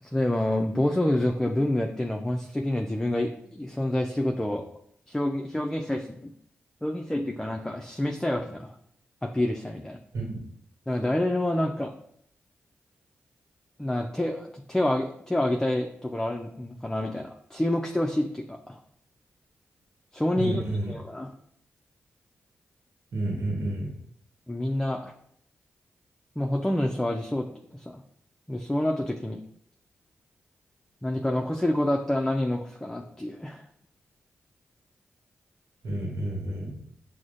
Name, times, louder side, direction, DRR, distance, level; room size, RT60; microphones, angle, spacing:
voice 1, 0.0-4.6 5.1-6.3 6.8-8.7 9.2-10.0 10.9-11.9 13.8-18.8 20.1-21.3 24.5-25.1 26.4-27.5 27.7-28.0 28.5-29.4 31.0-33.7, left 1 dB, 10° left, 2 dB, 0.4 m, -28 dB
voice 2, 20.3-20.9 23.1-24.0 35.8-36.8, right 1 dB, 70° right, -1 dB, 1.0 m, -30 dB
6.0 x 2.1 x 2.5 m, 0.69 s
supercardioid pair, 45°, 5 cm